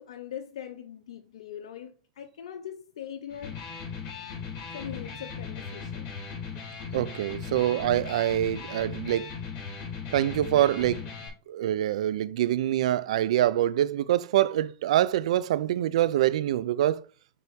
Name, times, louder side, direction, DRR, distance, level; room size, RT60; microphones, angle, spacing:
voice 1, 0.0-3.5 4.7-6.1, left 9 dB, 90° left, 0.6 m, -41 dB
Electric guitar, 3.3-11.3, left 6 dB, 50° left, 3.6 m, -38 dB
voice 2, 6.9-9.3 10.1-11.0 11.5-17.0, right 12 dB, 85° right, 0.4 m, -25 dB
6.6 x 4.0 x 3.5 m
supercardioid pair, 120°, 3 cm